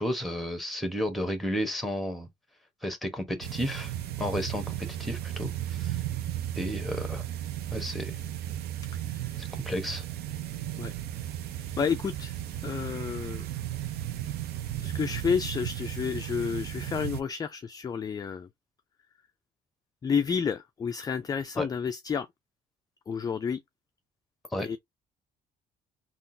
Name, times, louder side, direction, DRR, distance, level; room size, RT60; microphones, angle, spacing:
voice 1, 0.0-2.3 2.8-6.0 6.6-7.2 7.7-8.1 9.4-10.0 21.6-21.7 24.5-24.7, equal, ahead, 1.1 m, -32 dB
sound 1, 3.4-17.2, right 12 dB, 70° right, 0.6 m, -35 dB
voice 2, 9.0-9.4 10.8-10.9 11.8-12.3 12.6-13.5 14.8-18.5 20.0-22.3 23.1-23.6 24.6-24.8, left 6 dB, 25° left, 0.3 m, -30 dB
3.7 x 2.4 x 2.6 m
cardioid pair, 110°, 17 cm